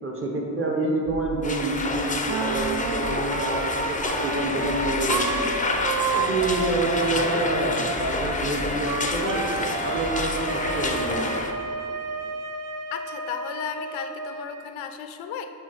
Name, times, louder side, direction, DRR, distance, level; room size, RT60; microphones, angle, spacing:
voice 1, 0.0-5.6 6.1-9.5 9.8-11.3, right 2 dB, 30° right, 0 dB, 1.1 m, -27 dB
sound 1, 1.1-9.4 9.7-11.6, left 2 dB, 80° right, 1.6 m, -41 dB
sound 2, 1.4-11.5, left 3 dB, 15° left, 0.5 m, -29 dB
Wind instrument woodwind instrument, 2.3-14.7, right 5 dB, 45° right, 0.6 m, -31 dB
voice 2, 12.9-15.5, left 8 dB, 85° left, 8 dB, 0.6 m, -34 dB
7.4 x 3.5 x 5.6 m, 2.5 s
cardioid pair, 80°, 46 cm